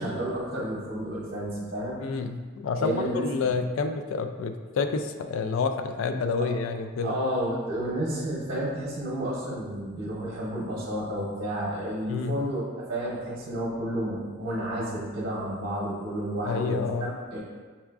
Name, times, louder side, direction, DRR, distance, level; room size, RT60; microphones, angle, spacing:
voice 1, 0.0-2.0 2.8-3.5 7.0-17.4, right 1 dB, 55° right, -6 dB, 0.8 m, -31 dB
voice 2, 2.0-7.1 12.1-12.4 16.4-17.1, left 4 dB, 70° left, 8 dB, 0.3 m, -29 dB
5.5 x 2.4 x 2.3 m, 1.4 s
head